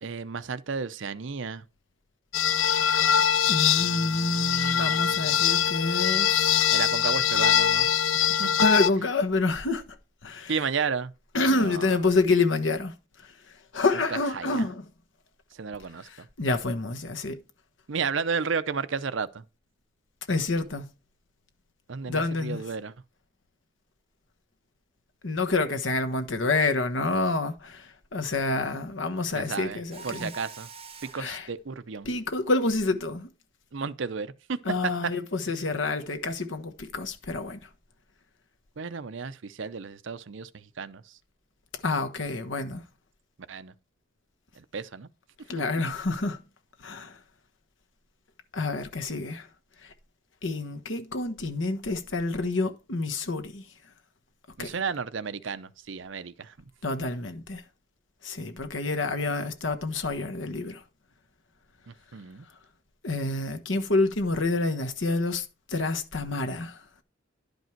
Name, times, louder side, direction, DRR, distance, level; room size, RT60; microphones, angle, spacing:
voice 1, 0.0-1.6 3.8-5.4 6.7-8.5 10.5-11.1 11.4-11.9 14.1-14.6 15.5-16.3 17.9-19.4 21.9-22.9 29.3-30.7 31.0-32.1 33.7-34.6 38.8-41.2 43.5-43.7 44.6-45.1 54.6-56.5 61.9-62.5, right 5 dB, 70° right, 0.6 m, -33 dB
sound 1, 2.3-8.9, left 9 dB, 85° left, 0.4 m, -23 dB
voice 2, 3.5-6.7 8.6-9.8 10.2-10.5 11.3-12.9 13.2-13.3 13.7-14.8 16.1-17.4 20.3-20.9 22.0-22.6 25.2-30.3 31.2-31.5 32.1-33.3 34.6-37.6 41.8-42.8 45.5-46.4 46.8-47.2 48.5-49.5 49.8-49.9 50.4-53.6 54.6-54.7 56.8-57.6 58.2-60.8 63.0-66.8, left 3 dB, 70° left, 1.2 m, -28 dB
Mechanisms, 29.9-31.4, right 4 dB, 30° right, 1.1 m, -44 dB
11.0 x 5.3 x 4.5 m
head